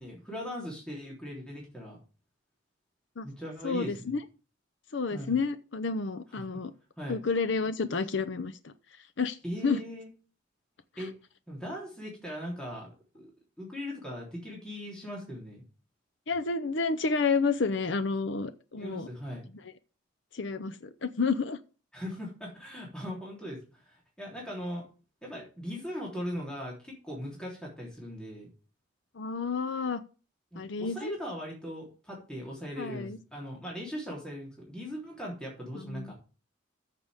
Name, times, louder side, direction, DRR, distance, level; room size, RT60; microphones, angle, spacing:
voice 1, 0.0-2.0 3.2-4.2 5.1-5.4 6.3-6.5 7.0-7.2 9.4-10.1 11.0-11.1 11.5-12.9 13.1-13.3 13.6-15.6 18.8-19.5 21.9-24.9 25.2-28.5 30.5-36.1, equal, 5° left, -4 dB, 3.5 m, -39 dB
voice 2, 3.6-4.2 4.9-6.7 7.1-9.8 11.0-11.1 16.3-19.1 20.3-21.6 29.1-30.0 30.5-31.2 32.8-33.2 35.7-36.1, left 4 dB, 60° left, 11 dB, 0.7 m, -30 dB
14.0 x 6.9 x 3.6 m, 0.35 s
head